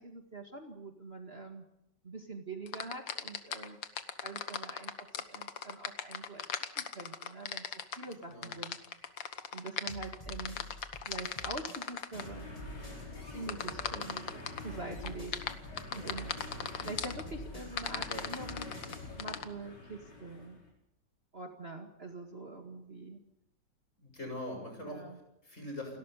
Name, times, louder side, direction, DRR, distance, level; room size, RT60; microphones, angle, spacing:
voice 1, 0.0-1.6 2.0-3.8 4.2-6.4 6.8-8.8 9.5-10.6 11.0-12.5 13.3-14.3 14.6-15.3 15.9-16.3 16.8-18.7 19.2-20.6 21.3-23.2 24.8-25.2, right 3 dB, 35° right, 4 dB, 2.2 m, -44 dB
sound 1, 2.7-12.2 13.5-14.6 15.0-17.2 17.8-19.4, left 7 dB, 90° left, 2.1 m, -38 dB
sound 2, 9.9-14.3 14.6-19.2, right 1 dB, 20° left, 2.7 m, -49 dB
voice 2, 10.4-10.7 24.0-26.0, left 1 dB, 40° left, 3 dB, 7.6 m, -43 dB
sound 3, 12.1-20.7, left 2 dB, 70° left, 6.1 m, -47 dB
29.5 x 13.0 x 9.8 m, 0.83 s
omnidirectional pair, 2.0 m